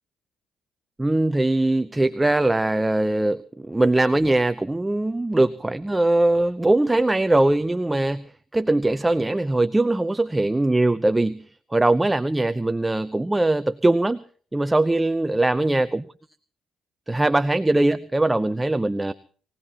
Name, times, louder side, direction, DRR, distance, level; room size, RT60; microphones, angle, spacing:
voice 1, 1.0-8.2 8.5-11.4 11.7-14.2 14.5-16.0 17.1-19.1, right 2 dB, 15° right, 12 dB, 0.7 m, -21 dB
23.5 x 17.5 x 2.9 m, 0.43 s
cardioid pair, 90°, 0 cm